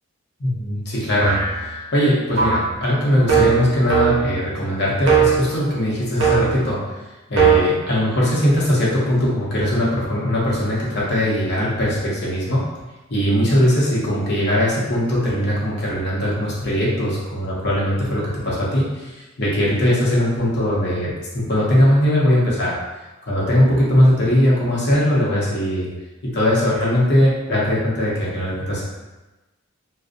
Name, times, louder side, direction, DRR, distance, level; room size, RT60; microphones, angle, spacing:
voice 1, 0.4-7.0 7.3-12.7 13.1-22.8 23.2-25.9 26.2-28.8, equal, 50° left, -6 dB, 0.7 m, -20 dB
sound 1, 1.2-1.7 2.4-2.7 3.3-4.4 5.0-5.5 6.2-6.7 7.4-7.6, right 6 dB, 60° right, 0.6 m, -18 dB
2.5 x 2.0 x 2.4 m, 1.1 s
head